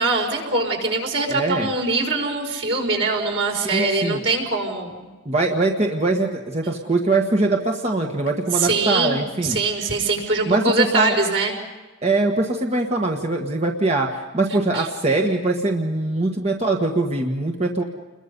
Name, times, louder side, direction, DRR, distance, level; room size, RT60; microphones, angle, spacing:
voice 1, 0.0-5.1 8.5-11.5 14.7-14.9, right 3 dB, 80° right, 1 dB, 5.3 m, -22 dB
voice 2, 1.3-1.7 3.6-4.2 5.2-9.6 10.4-11.2 12.0-17.8, right 2 dB, 35° right, 1 dB, 1.6 m, -22 dB
29.5 x 22.0 x 5.5 m, 1.3 s
head